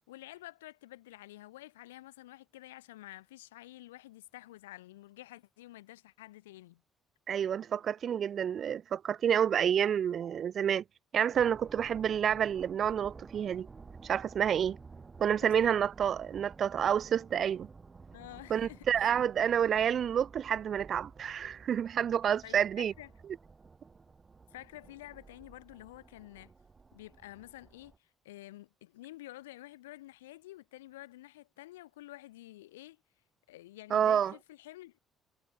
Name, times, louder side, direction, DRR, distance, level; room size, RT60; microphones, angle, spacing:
voice 1, 0.0-6.8 15.4-15.7 18.1-19.1 22.4-23.1 24.5-26.5 26.9-33.0 33.5-35.0, left 16 dB, 85° left, 5.3 m, -50 dB
voice 2, 7.3-10.8 11.1-13.7 14.0-14.8 15.2-17.7 18.5-22.9 33.9-34.3, right 8 dB, 55° right, 0.8 m, -29 dB
sound 1, 11.3-28.0, right 4 dB, 30° right, 1.6 m, -53 dB
hypercardioid pair, 50°, 0 cm